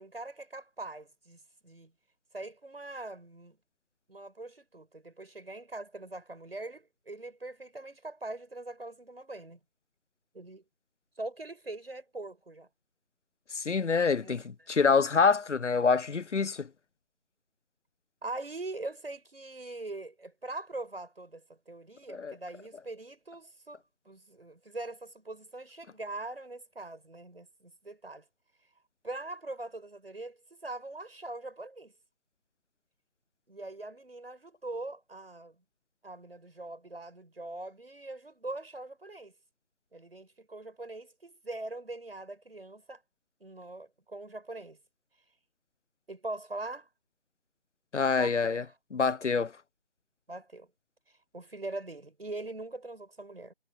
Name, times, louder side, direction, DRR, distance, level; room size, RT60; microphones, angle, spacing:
voice 1, 0.0-1.9 2.3-3.6 4.1-9.6 10.3-10.6 11.2-12.7 14.2-14.7 18.2-28.2 29.0-31.9 33.5-35.6 36.0-39.3 39.9-43.0 43.4-44.8 46.1-46.9 48.1-48.7 50.3-50.7 51.3-53.5, right 2 dB, 55° right, 6.4 m, -42 dB
voice 2, 13.6-16.7 22.1-22.4 47.9-48.6 48.9-49.5, left 5 dB, 85° left, 0.7 m, -26 dB
figure-of-eight pair, 170°, 35 cm